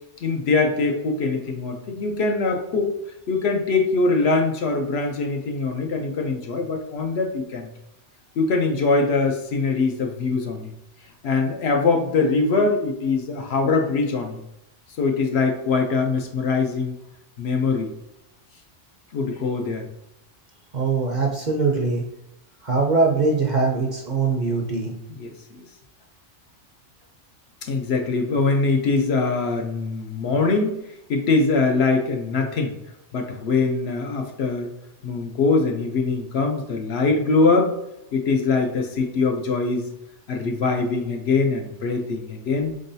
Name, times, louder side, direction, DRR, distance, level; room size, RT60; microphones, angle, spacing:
voice 1, 0.2-3.0 3.3-7.7 8.4-10.7 11.2-14.4 15.0-16.9 17.4-17.9 19.1-19.9 25.2-25.6 27.6-30.7 31.1-32.8 33.1-34.7 35.0-37.7 38.1-39.9 40.3-42.7, left 3 dB, 65° left, 4 dB, 0.8 m, -22 dB
voice 2, 20.7-22.0 22.6-24.9, right 4 dB, 50° right, 0 dB, 0.6 m, -22 dB
3.8 x 3.7 x 2.7 m, 0.87 s
omnidirectional pair, 1.2 m